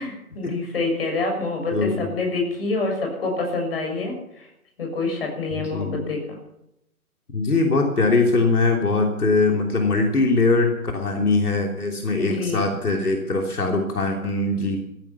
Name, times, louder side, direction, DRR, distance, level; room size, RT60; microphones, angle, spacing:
voice 1, 0.0-4.5 4.8-6.4 12.2-12.7, left 3 dB, 40° left, 2 dB, 6.7 m, -27 dB
voice 2, 1.7-2.1 5.5-6.1 7.3-14.8, left 3 dB, 80° left, 2 dB, 3.3 m, -22 dB
15.5 x 15.0 x 5.8 m, 0.83 s
figure-of-eight pair, 160°, 44 cm